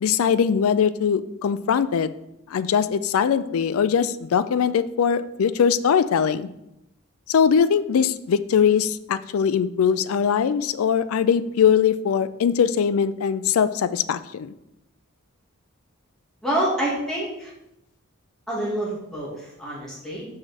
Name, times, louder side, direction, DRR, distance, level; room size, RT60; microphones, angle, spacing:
voice 1, 0.0-2.1 2.5-6.5 7.3-14.5, left 7 dB, 80° left, 14 dB, 0.3 m, -21 dB
voice 2, 16.4-17.5 18.5-20.3, right 1 dB, ahead, -7 dB, 2.1 m, -27 dB
5.9 x 4.9 x 4.2 m, 0.86 s
head